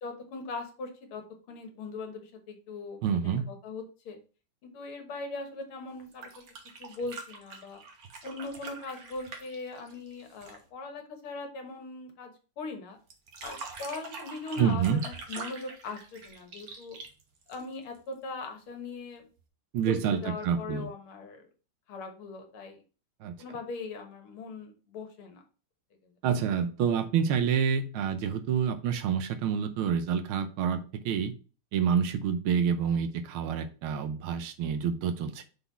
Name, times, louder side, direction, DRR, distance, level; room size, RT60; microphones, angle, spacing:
voice 1, 0.0-4.2 4.6-6.4 6.8-7.8 8.2-13.0 13.4-17.0 17.5-19.3 19.9-21.4 21.9-22.8 23.4-25.4, left 3 dB, 80° left, 4 dB, 2.1 m, -40 dB
voice 2, 3.0-3.5 14.6-15.0 19.7-20.9 23.2-23.3 26.2-31.3 31.7-35.4, right 7 dB, 80° right, 9 dB, 1.5 m, -28 dB
sound 1, 6.0-10.7 13.1-18.0 19.4-19.5, right 4 dB, 50° right, 1.4 m, -44 dB
5.9 x 4.0 x 4.0 m, 0.35 s
omnidirectional pair, 2.4 m